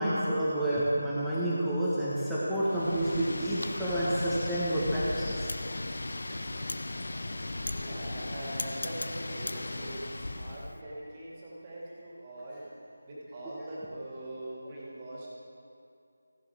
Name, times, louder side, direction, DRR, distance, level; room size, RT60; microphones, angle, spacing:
voice 1, 0.0-5.3 13.6-13.7, right 1 dB, ahead, -13 dB, 1.5 m, -29 dB
Wind, 2.6-10.8, left 2 dB, 65° left, 0.7 m, -36 dB
voice 2, 7.7-12.7 13.0-15.3, right 1 dB, 25° right, -6 dB, 2.6 m, -42 dB
15.0 x 11.0 x 3.6 m, 2.5 s
figure-of-eight pair, 165°, 0 cm